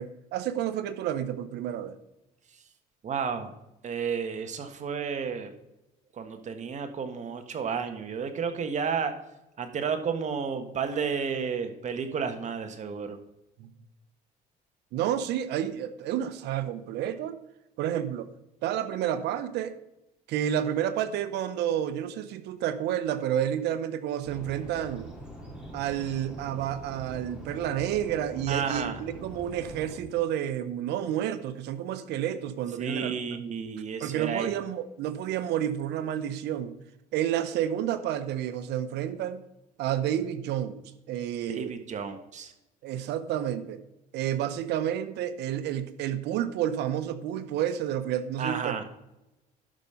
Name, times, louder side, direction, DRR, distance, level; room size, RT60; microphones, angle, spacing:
voice 1, 0.0-1.9 13.6-13.7 14.9-17.4 17.8-18.3 18.6-19.8 20.3-25.1 25.7-33.4 34.0-36.8 37.1-39.4 39.8-40.8 41.1-41.7 42.8-43.8 44.1-48.8, right 10 dB, 80° right, 12 dB, 0.9 m, -30 dB
voice 2, 3.0-3.5 3.8-5.5 6.2-9.1 9.6-13.2 28.5-29.0 32.8-34.5 41.5-42.5 48.4-48.8, right 6 dB, 45° right, 7 dB, 1.5 m, -32 dB
sound 1, 24.2-30.0, right 1 dB, 5° right, 3.2 m, -43 dB
11.5 x 5.3 x 5.7 m, 0.92 s
cardioid pair, 110°, 17 cm